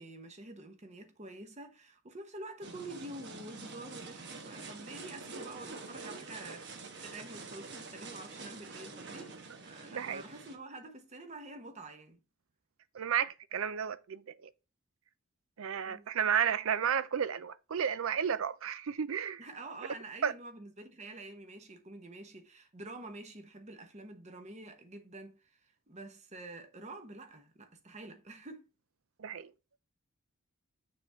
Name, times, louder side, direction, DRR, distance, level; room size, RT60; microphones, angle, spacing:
voice 1, 0.0-9.3 9.6-12.2 15.8-16.2 19.4-28.7, right 2 dB, 30° right, 1.0 m, -48 dB
sound 1, 2.6-10.6, right 4 dB, 55° right, 1.1 m, -46 dB
voice 2, 9.9-10.2 12.9-14.5 15.6-19.4 20.2-20.3 29.2-29.5, right 8 dB, 70° right, 0.5 m, -32 dB
6.7 x 3.6 x 5.5 m
head